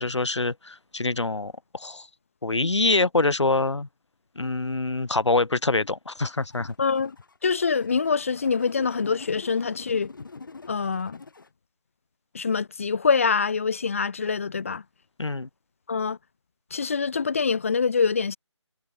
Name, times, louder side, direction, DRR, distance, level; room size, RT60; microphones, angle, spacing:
voice 1, 0.0-2.1 2.4-3.9 4.4-6.7 15.2-15.5, left 3 dB, 70° left, 2.3 m, -25 dB
sound 1, 6.2-11.5, left 4 dB, 45° left, 5.4 m, -45 dB
voice 2, 6.8-7.2 7.4-10.1 10.7-11.2 12.3-14.8 15.9-16.2 16.7-18.4, left 5 dB, 25° left, 1.5 m, -25 dB
figure-of-eight pair, 170°, 15 cm